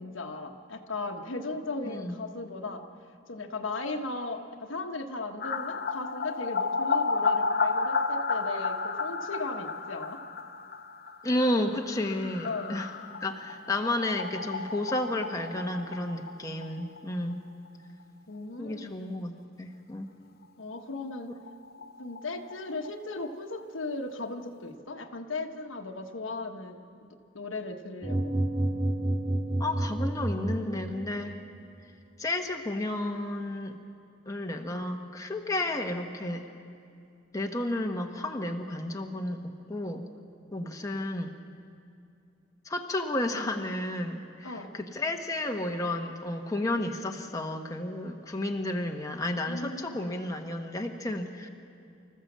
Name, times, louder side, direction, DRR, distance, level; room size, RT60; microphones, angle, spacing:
voice 1, 0.0-2.8 3.3-10.2 12.2-12.8 18.3-19.0 20.6-21.3 22.0-26.8 27.3-28.2 44.4-44.8 49.5-50.1, left 3 dB, 85° left, 4 dB, 1.3 m, -37 dB
voice 2, 1.8-2.2 11.2-12.9 13.2-17.4 18.6-19.3 19.6-20.1 29.6-31.4 32.2-33.8 34.3-36.5 37.3-39.4 39.7-40.1 40.5-41.4 42.6-51.5, left 1 dB, 20° left, 2 dB, 1.1 m, -32 dB
sound 1, 5.4-17.0 17.3-17.4 17.7-17.8 20.8-20.9 21.1-21.2 21.5-23.2 23.5-23.6, left 4 dB, 50° left, 0.8 m, -32 dB
sound 2, 28.0-31.3, right 1 dB, 25° right, 1.1 m, -29 dB
25.5 x 14.0 x 7.4 m, 2.4 s
head